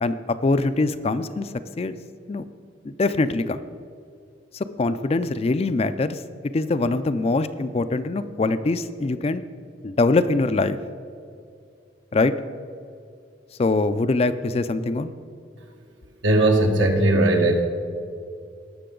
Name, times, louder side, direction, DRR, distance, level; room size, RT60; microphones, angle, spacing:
voice 1, 0.4-1.9 2.3-2.4 2.8-3.6 4.5-6.2 6.5-9.4 9.8-10.8 12.1-12.3 13.6-15.1, left 3 dB, 30° left, 12 dB, 0.4 m, -23 dB
voice 2, 16.2-17.6, right 1 dB, 85° right, 2 dB, 1.5 m, -18 dB
18.0 x 6.7 x 3.8 m, 2.4 s
head